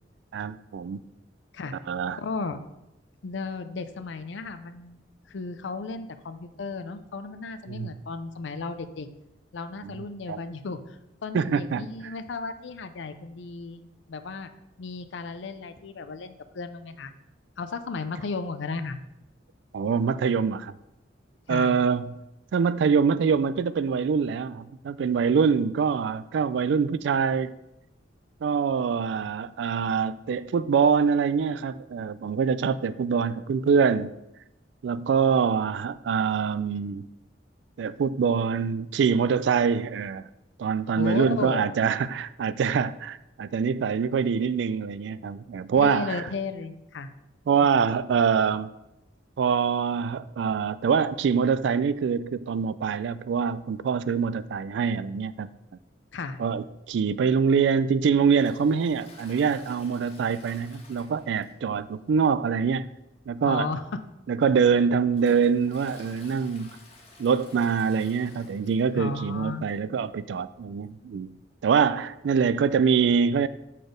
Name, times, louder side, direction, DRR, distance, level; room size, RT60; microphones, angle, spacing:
voice 1, 0.3-1.0 1.9-2.2 7.7-8.0 9.8-10.4 11.3-12.1 19.7-20.7 21.5-22.1 22.5-27.5 28.4-34.1 34.8-37.0 37.8-40.2 40.6-46.2 47.5-48.7 49.4-55.5 56.4-62.9 63.3-63.7 64.3-66.8 67.2-71.3 71.6-73.5, right 6 dB, 70° right, 0.3 m, -24 dB
voice 2, 2.1-2.6 3.2-5.0 5.3-9.1 9.5-14.5 14.8-17.1 17.6-19.0 21.5-21.8 41.0-41.7 45.7-47.1 56.1-56.4 63.4-64.0 68.9-69.7, left 4 dB, 75° left, 0.5 m, -34 dB
Toilet flush, 58.3-61.8 62.0-62.1 62.6-62.7 63.5-63.6 64.2-69.1 69.4-69.5 69.7-69.8 70.8-70.9, left 2 dB, 35° left, 1.2 m, -51 dB
6.8 x 4.2 x 5.0 m
head